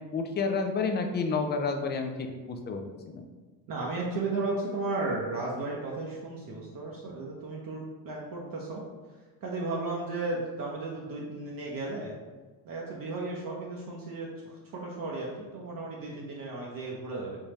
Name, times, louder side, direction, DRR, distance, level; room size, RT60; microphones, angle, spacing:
voice 1, 0.1-2.1 2.5-2.8 3.1-3.2, left 4 dB, 25° left, 5 dB, 0.3 m, -29 dB
voice 2, 3.7-8.8 9.4-12.1 12.6-17.4, right 2 dB, 45° right, -3 dB, 0.7 m, -34 dB
3.5 x 2.6 x 3.0 m, 1.3 s
supercardioid pair, 75°, 49 cm